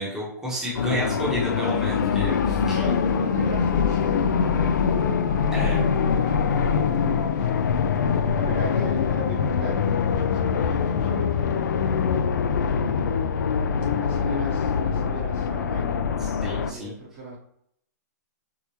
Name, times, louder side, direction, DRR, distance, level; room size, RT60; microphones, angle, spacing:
voice 1, 0.0-2.8 5.5-5.8 16.2-16.9, equal, 5° right, -6 dB, 0.9 m, -30 dB
sound 1, 0.7-16.7, left 6 dB, 75° left, 0.4 m, -23 dB
voice 2, 2.7-5.6 6.0-7.7 8.3-11.9 12.5-13.4 14.0-16.1 16.7-17.4, right 1 dB, 35° right, -3 dB, 0.9 m, -39 dB
4.6 x 2.1 x 2.9 m, 0.71 s
hypercardioid pair, 155°, 10 cm